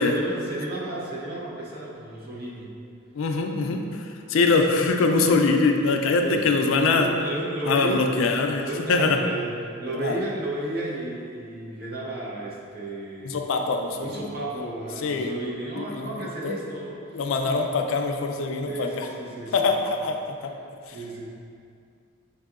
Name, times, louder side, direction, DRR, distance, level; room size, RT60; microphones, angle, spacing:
voice 1, 0.0-2.7 5.3-5.4 6.2-8.2 8.6-13.4 14.0-17.6 18.6-19.7 20.0-20.1 20.9-21.3, right 1 dB, 45° right, -4 dB, 0.7 m, -33 dB
voice 2, 3.2-3.8 4.3-7.1 7.7-9.2 10.0-10.2 13.2-14.2 15.0-15.4 15.8-16.5 17.1-19.1 19.5-20.2, left 3 dB, 70° left, 4 dB, 0.3 m, -23 dB
6.4 x 2.7 x 2.4 m, 2.4 s
head